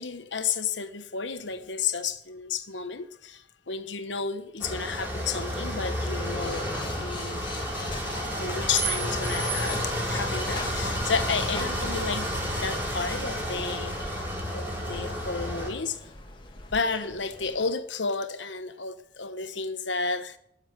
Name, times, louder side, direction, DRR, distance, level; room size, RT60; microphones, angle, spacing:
voice 1, 0.0-3.4 3.7-6.7 7.0-7.4 8.4-12.3 12.6-14.2 14.5-16.0 16.7-20.4, left 5 dB, 75° left, 1.2 m, -32 dB
sound 1, 4.6-15.7, equal, 10° right, 5.4 m, -30 dB
sound 2, 6.2-17.7, left 2 dB, 25° left, 1.9 m, -43 dB
14.5 x 7.4 x 9.2 m
head